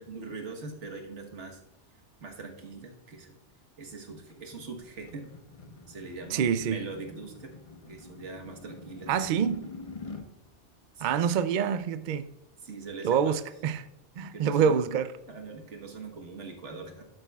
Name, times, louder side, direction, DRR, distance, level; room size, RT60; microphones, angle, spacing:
voice 1, 0.0-1.6 2.2-3.3 3.8-5.3 5.9-7.5 7.9-9.2 10.9-11.4 12.6-13.4 14.2-14.8 15.3-17.0, right 4 dB, 80° right, 1.6 m, -42 dB
sound 1, 4.3-10.3, left 3 dB, 35° left, 0.8 m, -46 dB
voice 2, 6.3-6.8 9.1-9.6 11.0-12.3 13.0-13.8 14.2-15.1, right 7 dB, 60° right, 0.5 m, -26 dB
12.0 x 7.9 x 2.3 m
omnidirectional pair, 1.2 m